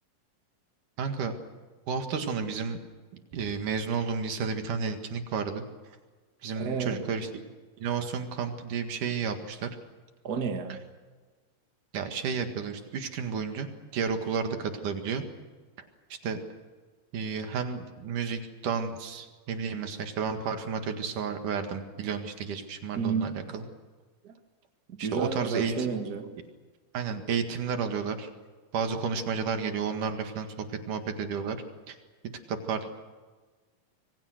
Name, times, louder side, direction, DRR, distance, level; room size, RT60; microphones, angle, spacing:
voice 1, 1.0-1.3 1.9-2.8 3.3-5.6 6.4-7.3 7.8-9.7 11.9-15.2 16.2-16.4 17.1-23.6 25.0-25.9 26.9-28.3 28.7-31.6 31.9-32.0 32.5-32.9, right 6 dB, 70° right, 6 dB, 3.3 m, -32 dB
voice 2, 6.6-7.0 10.2-10.8 22.9-23.3 24.2-24.3 24.9-26.4, right 5 dB, 35° right, 5 dB, 1.9 m, -31 dB
26.5 x 23.0 x 6.5 m, 1.4 s
omnidirectional pair, 3.8 m